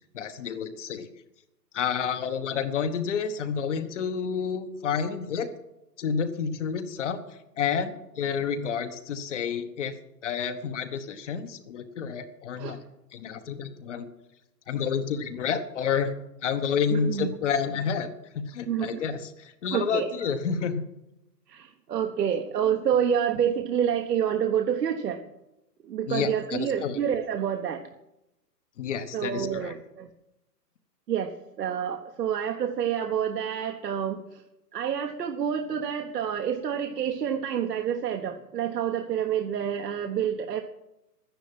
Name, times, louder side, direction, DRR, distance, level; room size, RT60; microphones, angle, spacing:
voice 1, 0.1-1.1 1.7-5.5 6.0-7.2 7.6-9.9 10.2-12.8 13.1-14.1 14.7-16.1 16.4-18.1 18.3-20.8 26.1-27.0 28.8-29.7, left 6 dB, 45° left, 7 dB, 1.2 m, -29 dB
voice 2, 16.9-17.3 18.7-19.0 19.7-20.1 21.5-25.2 25.8-27.8 29.1-30.1 31.1-31.3 31.6-34.2 34.7-40.6, right 8 dB, 70° right, 5 dB, 1.3 m, -28 dB
11.5 x 10.5 x 7.6 m, 0.90 s
hypercardioid pair, 160°, 49 cm